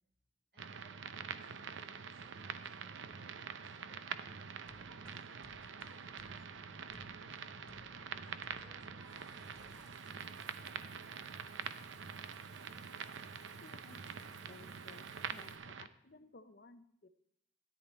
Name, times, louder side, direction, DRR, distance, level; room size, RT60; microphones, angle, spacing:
voice 1, 0.5-3.3 3.6-9.0 9.3-11.7, right 1 dB, 60° right, -1 dB, 5.2 m, -68 dB
sound 1, 0.6-15.9, right 6 dB, 90° right, 0.6 m, -46 dB
sound 2, 4.6-9.9, left 1 dB, 5° left, 0.6 m, -62 dB
Water / Bathtub (filling or washing), 9.0-15.5, right 3 dB, 20° right, 1.1 m, -65 dB
voice 2, 13.6-17.1, left 3 dB, 55° left, 10 dB, 0.6 m, -59 dB
13.5 x 10.5 x 4.2 m, 0.71 s
head